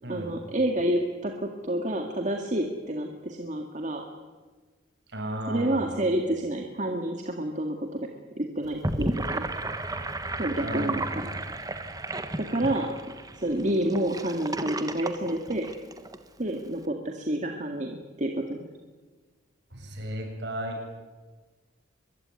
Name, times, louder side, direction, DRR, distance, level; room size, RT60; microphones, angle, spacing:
voice 1, 0.1-4.1 5.5-8.0 8.4-9.4 10.4-11.3 12.4-12.9 13.4-15.7 16.4-18.7, right 1 dB, 35° right, 3 dB, 2.0 m, -29 dB
voice 2, 5.1-5.9 10.6-11.2 19.7-20.8, equal, 55° right, 2 dB, 7.4 m, -34 dB
Gurgling / Sink (filling or washing), 8.6-16.2, right 2 dB, 20° right, 1.4 m, -33 dB
24.5 x 21.5 x 9.6 m, 1.3 s
head